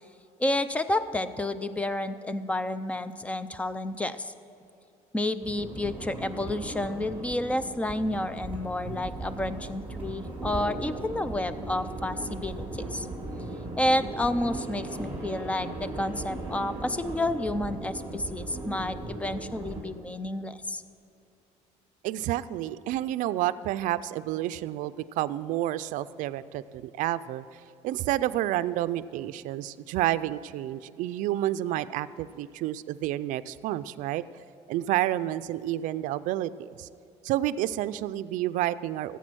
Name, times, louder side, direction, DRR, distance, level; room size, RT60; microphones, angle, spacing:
voice 1, 0.4-4.3 5.1-13.1 13.8-20.8, left 1 dB, 10° left, 13 dB, 0.5 m, -30 dB
sound 1, 5.4-19.8, right 2 dB, 10° right, 3.8 m, -37 dB
voice 2, 22.0-34.2 34.7-36.9 37.2-39.2, right 14 dB, 80° right, 14 dB, 0.4 m, -30 dB
15.0 x 8.3 x 6.2 m, 2.7 s
cardioid pair, 135°, 13 cm